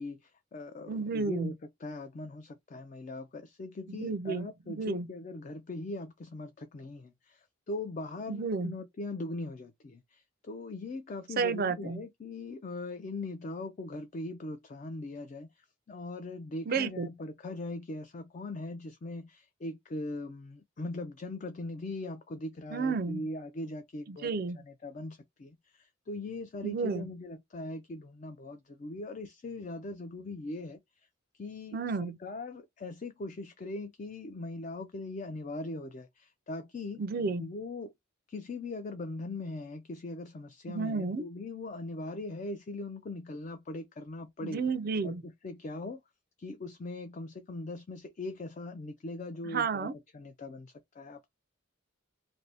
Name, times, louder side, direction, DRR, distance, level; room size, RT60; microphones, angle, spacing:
voice 1, 0.0-24.3 24.6-31.1 31.3-37.0 37.4-37.9 38.3-44.6 45.0-46.0 46.4-51.3, left 2 dB, 40° left, 0.3 m, -40 dB
voice 2, 0.9-1.5 3.9-4.5 4.8-5.1 8.3-8.7 11.4-12.0 16.7-17.1 22.7-23.3 24.1-24.6 26.6-27.1 31.7-32.2 37.0-37.5 40.7-41.2 44.4-45.2 49.5-49.9, right 4 dB, 45° right, 0.4 m, -31 dB
2.6 x 2.6 x 3.3 m
head